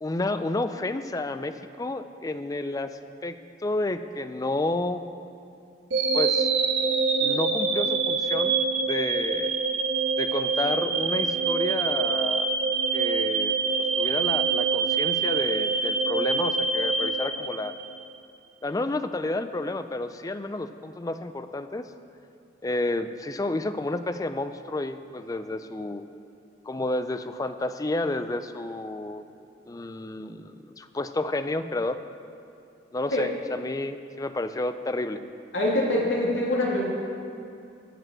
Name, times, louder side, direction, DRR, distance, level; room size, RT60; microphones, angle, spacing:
voice 1, 0.0-2.9 3.2-3.4 3.6-5.0 6.1-6.5 7.2-8.6 8.8-9.5 10.2-12.5 12.9-13.5 14.0-17.7 18.6-21.9 22.6-26.0 26.7-29.2 29.7-32.0 32.9-35.2, left 2 dB, 20° left, 10 dB, 0.4 m, -30 dB
sound 1, 5.9-18.0, right 4 dB, 80° right, 1.4 m, -25 dB
voice 2, 35.5-36.8, left 1 dB, 80° left, -3 dB, 2.5 m, -24 dB
15.0 x 5.2 x 7.6 m, 2.5 s
head